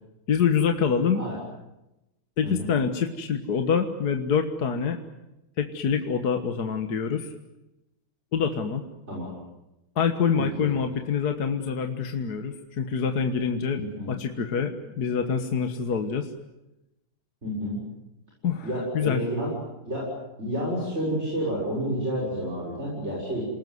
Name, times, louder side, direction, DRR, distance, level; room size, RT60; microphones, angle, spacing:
voice 1, 0.3-1.2 2.4-5.0 5.6-7.3 8.3-8.8 10.0-16.3 18.4-18.7 18.9-19.2, left 6 dB, 55° left, 6 dB, 1.8 m, -26 dB
voice 2, 2.4-2.7 9.1-9.3 10.6-10.7 13.8-14.1 17.4-17.8 18.6-19.5 19.9-20.1 20.4-23.5, equal, 30° right, -4 dB, 7.0 m, -30 dB
28.5 x 19.0 x 9.5 m, 0.94 s
omnidirectional pair, 2.2 m